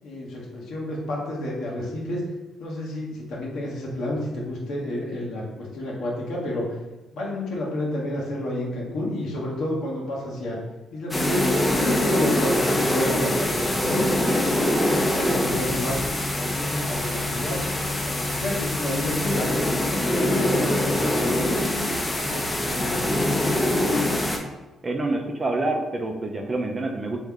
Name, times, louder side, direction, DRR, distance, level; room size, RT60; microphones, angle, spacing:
voice 1, 0.0-2.2 2.6-6.8 7.1-10.6 10.9-14.1 14.8-17.6 18.1-19.5 19.9-23.4, left 1 dB, 80° left, -4 dB, 1.1 m, -30 dB
sound 1, 11.1-24.4, left 1 dB, 15° left, 0.6 m, -24 dB
voice 2, 24.8-27.2, right 2 dB, 30° right, 2 dB, 0.5 m, -27 dB
3.5 x 3.1 x 3.6 m, 1.1 s
cardioid pair, 90°, 0 cm